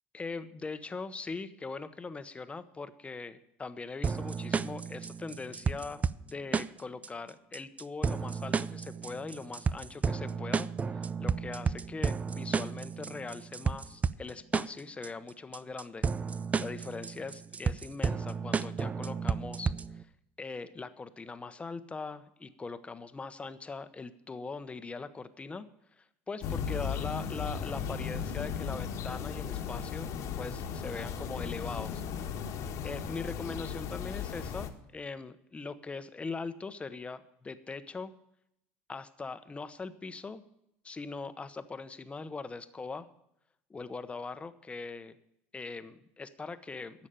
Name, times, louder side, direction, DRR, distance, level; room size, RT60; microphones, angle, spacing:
voice 1, 0.1-16.1 16.6-20.1 20.4-25.7 26.0-32.0 32.8-38.1 38.9-40.4 40.8-43.1 43.7-45.2 45.5-47.1, left 4 dB, 20° left, 12 dB, 0.9 m, -41 dB
sound 1, 4.0-20.0, right 5 dB, 20° right, 0.4 m, -32 dB
sound 2, 26.4-34.7, left 7 dB, 55° left, 1.4 m, -36 dB
11.0 x 7.3 x 9.1 m, 0.79 s
supercardioid pair, 95°, 6 cm